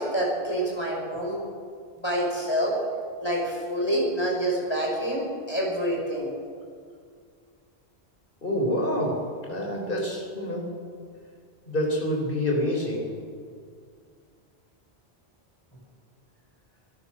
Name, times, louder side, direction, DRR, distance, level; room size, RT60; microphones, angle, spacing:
voice 1, 0.0-1.4 2.0-2.7 3.2-6.3, equal, 25° left, -2 dB, 6.2 m, -27 dB
voice 2, 8.4-10.7 11.7-13.1, left 1 dB, 55° left, 0 dB, 5.2 m, -27 dB
27.0 x 16.5 x 6.6 m, 2.1 s
omnidirectional pair, 1.1 m